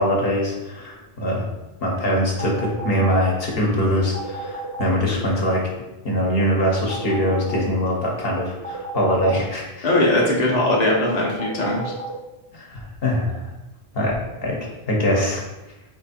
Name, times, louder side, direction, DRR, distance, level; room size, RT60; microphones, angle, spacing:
voice 1, 0.0-1.5 1.8-5.6 6.0-9.9 12.5-13.4 13.9-14.1 14.4-14.6 14.9-15.4, equal, 70° left, -2 dB, 1.2 m, -22 dB
sound 1, 2.4-3.1 4.1-4.9 6.9-7.6 8.6-9.4 11.4-12.1, equal, 30° right, 0.3 m, -32 dB
voice 2, 9.8-11.9, left 1 dB, 45° left, -3 dB, 0.9 m, -20 dB
4.7 x 2.6 x 4.1 m, 0.99 s
omnidirectional pair, 1.0 m